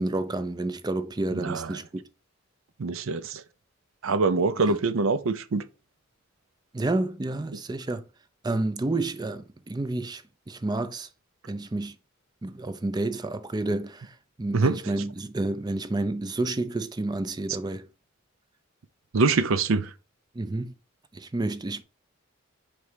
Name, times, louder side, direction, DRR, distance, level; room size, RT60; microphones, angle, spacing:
voice 1, 0.0-2.1 4.6-4.8 6.7-8.0 8.4-11.1 11.5-12.0 12.4-17.9 20.4-20.8 21.1-21.8, right 2 dB, 20° right, 0.4 m, -30 dB
voice 2, 1.4-1.7 2.8-3.4 4.0-5.6 14.5-14.8 19.1-19.9, right 3 dB, 75° right, 0.5 m, -24 dB
4.7 x 4.1 x 4.9 m
head